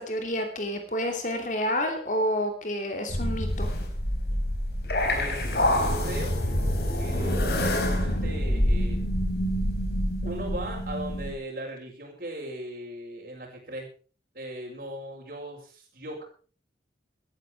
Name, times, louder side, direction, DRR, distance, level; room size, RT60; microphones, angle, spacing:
voice 1, 0.0-3.7, equal, 45° left, 5 dB, 2.9 m, -29 dB
sound 1, 3.1-11.3, equal, 65° left, 4.3 m, -26 dB
voice 2, 5.1-6.4 7.0-9.0 10.2-13.9 14.3-16.2, right 1 dB, 55° right, -6 dB, 5.4 m, -38 dB
17.0 x 13.0 x 4.8 m, 0.39 s
head